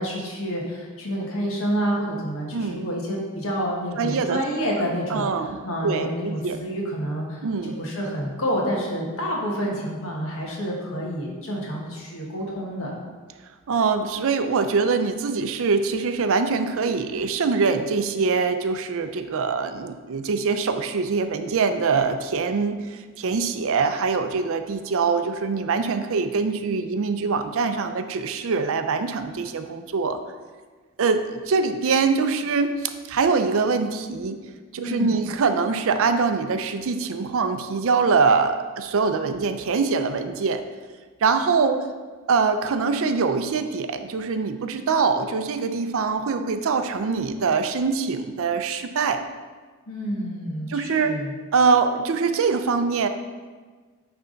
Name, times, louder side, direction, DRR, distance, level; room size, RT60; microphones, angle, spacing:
voice 1, 0.0-5.3 5.6-13.0 34.8-35.2 49.9-51.3, equal, 65° left, -2 dB, 1.5 m, -28 dB
voice 2, 4.0-4.4 5.1-5.6 5.8-6.6 7.4-7.7 13.7-30.2 31.0-34.4 34.7-40.6 41.2-41.8 42.3-49.2 50.7-51.1 51.5-53.1, right 4 dB, 65° right, 8 dB, 0.5 m, -23 dB
9.2 x 3.5 x 3.9 m, 1.4 s
head